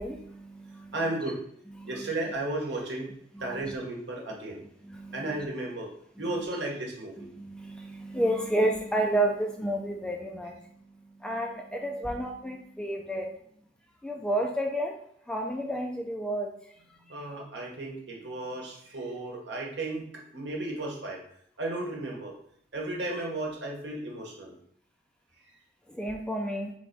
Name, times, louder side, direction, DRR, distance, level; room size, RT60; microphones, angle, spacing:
voice 1, 0.0-1.0 1.8-2.1 3.3-3.7 4.8-5.5 6.2-6.3 7.2-13.3 14.0-14.9 15.3-16.5 25.9-26.7, right 1 dB, 5° left, 1 dB, 0.4 m, -31 dB
voice 2, 0.9-1.4 1.9-3.1 3.4-4.6 5.1-5.9 6.2-7.3 17.1-21.2 21.6-22.3 22.7-24.5, right 2 dB, 70° right, -1 dB, 1.1 m, -34 dB
3.5 x 3.3 x 3.9 m, 0.67 s
head